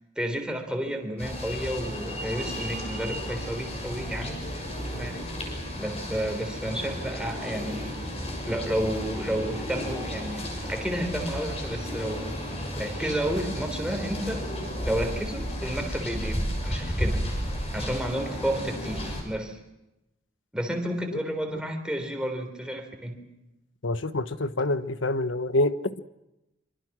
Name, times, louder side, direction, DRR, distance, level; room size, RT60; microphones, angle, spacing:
voice 1, 0.2-4.4 4.9-5.3 5.8-8.0 8.5-12.4 12.8-14.4 14.9-17.2 17.7-19.6 20.5-23.2, equal, 5° right, 3.8 m, -31 dB
sound 1, 1.2-19.2, equal, 35° left, 6.6 m, -33 dB
voice 2, 23.8-26.0, left 2 dB, 80° left, 1.2 m, -26 dB
26.5 x 25.5 x 6.2 m
head